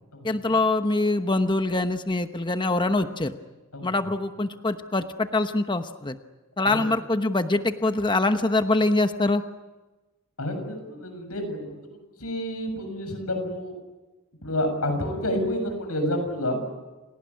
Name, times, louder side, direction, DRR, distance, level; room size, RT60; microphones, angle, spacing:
voice 1, 0.2-3.3 3.8-6.2 6.6-9.4, left 2 dB, 20° left, 8 dB, 1.0 m, -24 dB
voice 2, 10.4-11.9 12.2-13.7 14.4-16.6, left 1 dB, 85° left, 6 dB, 6.9 m, -29 dB
29.0 x 18.5 x 9.7 m, 1.2 s
head